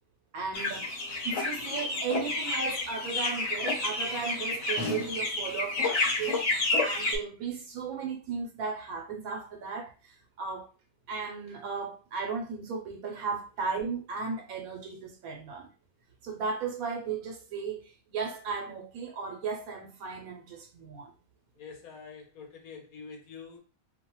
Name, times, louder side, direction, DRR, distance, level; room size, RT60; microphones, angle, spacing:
voice 1, 0.3-10.7 11.1-15.7 16.2-21.1, right 5 dB, 85° right, 1.1 m, -36 dB
sound 1, 0.5-7.2, left 2 dB, 65° left, 1.0 m, -30 dB
voice 2, 21.6-23.6, left 5 dB, 80° left, 1.3 m, -46 dB
2.7 x 2.2 x 3.0 m
omnidirectional pair, 1.5 m